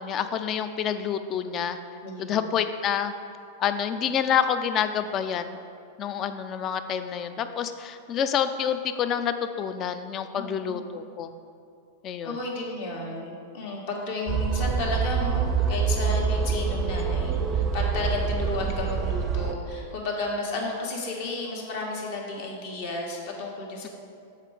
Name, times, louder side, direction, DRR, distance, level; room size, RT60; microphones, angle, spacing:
voice 1, 0.0-1.8 2.2-3.1 3.6-5.5 6.0-11.3 12.0-12.4, left 8 dB, 35° left, 10 dB, 0.4 m, -28 dB
voice 2, 2.0-2.4 10.3-10.8 12.2-23.9, left 2 dB, 60° left, -1 dB, 1.5 m, -32 dB
sound 1, 14.3-19.5, right 6 dB, 25° right, 0.5 m, -26 dB
7.4 x 4.5 x 4.9 m, 2.4 s
figure-of-eight pair, 95°, 0 cm